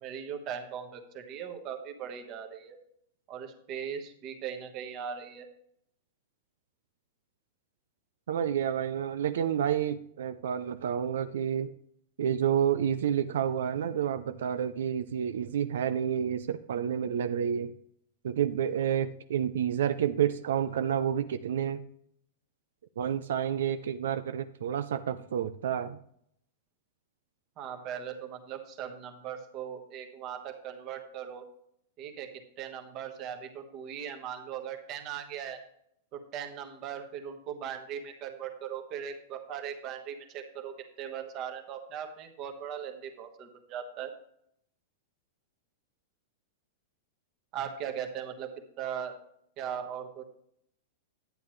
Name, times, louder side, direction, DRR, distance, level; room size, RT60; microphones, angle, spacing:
voice 1, 0.0-2.8 3.3-5.5 27.6-31.4 32.0-32.3 32.6-35.6 36.1-44.1 47.5-48.5 48.8-49.1 49.6-50.2, right 8 dB, 30° right, 5 dB, 1.3 m, -39 dB
voice 2, 8.3-11.7 12.2-17.7 18.2-21.8 23.0-26.0, right 9 dB, 80° right, 11 dB, 0.5 m, -29 dB
11.0 x 8.9 x 3.2 m, 0.69 s
supercardioid pair, 170°, 0 cm